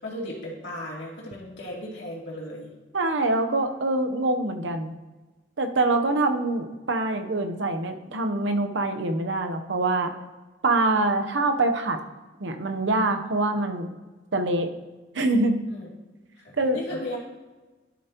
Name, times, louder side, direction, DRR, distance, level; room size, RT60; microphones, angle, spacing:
voice 1, 0.0-2.7 15.7-15.9 16.4-17.2, left 1 dB, 70° left, -4 dB, 2.8 m, -36 dB
voice 2, 2.9-4.9 5.6-10.1 10.6-12.0 12.4-13.9 14.3-14.7 15.1-15.6 16.6-16.8, right 2 dB, 80° right, 6 dB, 0.8 m, -24 dB
11.5 x 6.9 x 2.9 m, 1.2 s
head